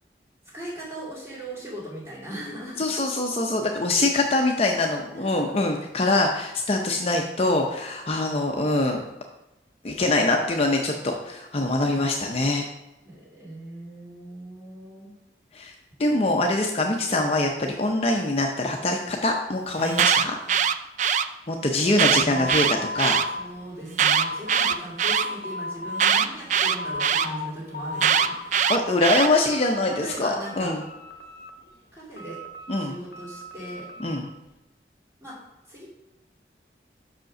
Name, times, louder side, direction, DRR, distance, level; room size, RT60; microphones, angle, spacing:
voice 1, 0.5-2.8 5.1-5.6 13.0-15.1 21.8-22.5 23.3-28.7 29.3-29.4 30.0-30.8 31.9-32.4 32.8-33.9 35.2-35.4 35.7-35.9, equal, 15° right, -7 dB, 2.8 m, -38 dB
voice 2, 2.8-9.0 9.8-12.7 15.5-15.7 16.0-20.4 21.5-23.2 28.7-30.8 32.7-33.0 34.0-34.3, left 2 dB, 35° left, 2 dB, 0.6 m, -24 dB
Alarm, 19.8-21.2 21.9-23.2 23.9-25.2 26.0-27.3 28.0-29.3, right 8 dB, 45° right, 0.3 m, -21 dB
sound 1, 22.3-24.8 25.0-26.1 26.5-27.5 27.7-28.8 29.2-30.2 30.4-31.7 32.2-34.2, left 2 dB, 65° left, 0.8 m, -35 dB
5.7 x 5.1 x 6.3 m, 0.97 s
head